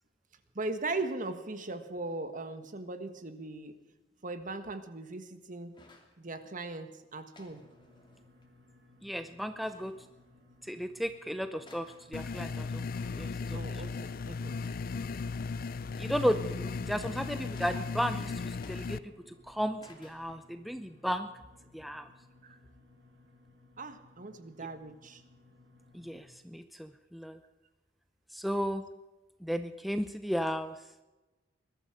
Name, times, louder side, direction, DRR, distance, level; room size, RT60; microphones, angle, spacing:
voice 1, 0.5-3.8 4.2-5.7 6.2-7.6 13.5-14.6 15.0-15.1 22.4-22.6 23.8-25.2, right 2 dB, 45° right, 9 dB, 1.6 m, -39 dB
sound 1, 5.7-6.2 7.3-8.4 9.6-10.1 11.1-11.2 11.6-12.1 12.9-13.4 14.6-15.2 16.5-17.0 17.5-18.1 18.6-19.4 19.8-20.6, left 2 dB, 25° left, 2.6 m, -57 dB
sound 2, 7.5-26.3, left 2 dB, 70° right, 7.0 m, -61 dB
voice 2, 9.0-10.0 10.6-12.9 13.2-13.8 16.0-21.3 21.7-22.1 25.9-27.4 28.3-28.8 29.4-30.8, equal, ahead, 9 dB, 0.6 m, -34 dB
sound 3, 12.1-19.0, left 4 dB, 50° left, 0.4 m, -36 dB
21.0 x 13.5 x 5.0 m, 1.1 s
head